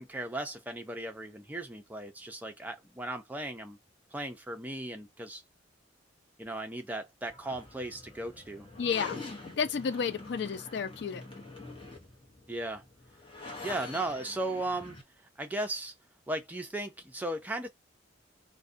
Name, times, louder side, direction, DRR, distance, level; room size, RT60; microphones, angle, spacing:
voice 1, 0.0-3.8 4.1-5.4 6.4-8.7 12.5-12.8 13.6-15.0 15.4-15.9 16.3-17.7, right 1 dB, 10° right, 0.4 m, -36 dB
sound 1, 7.3-15.0, left 2 dB, 30° left, 0.8 m, -45 dB
voice 2, 8.8-9.2 9.5-11.2, left 6 dB, 60° left, 0.4 m, -31 dB
2.4 x 2.1 x 2.5 m
head